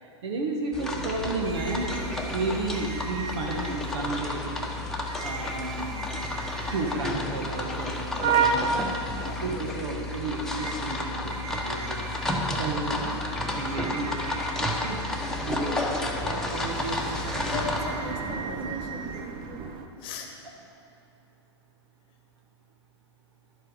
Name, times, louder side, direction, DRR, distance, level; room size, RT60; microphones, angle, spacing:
voice 1, 0.0-1.9 2.3-4.4 5.2-5.9 6.7-8.0 8.2-12.0 12.6-15.0 15.4-17.2, right 3 dB, 65° right, 0 dB, 1.3 m, -33 dB
sound 1, 0.7-17.8, left 2 dB, 5° left, 1.1 m, -31 dB
sound 2, 0.9-19.9, right 6 dB, 35° right, 0.9 m, -35 dB
voice 2, 17.3-19.6 20.0-20.3, left 4 dB, 35° left, 4 dB, 1.1 m, -38 dB
11.5 x 7.5 x 5.0 m, 2.8 s
hypercardioid pair, 110°, 15 cm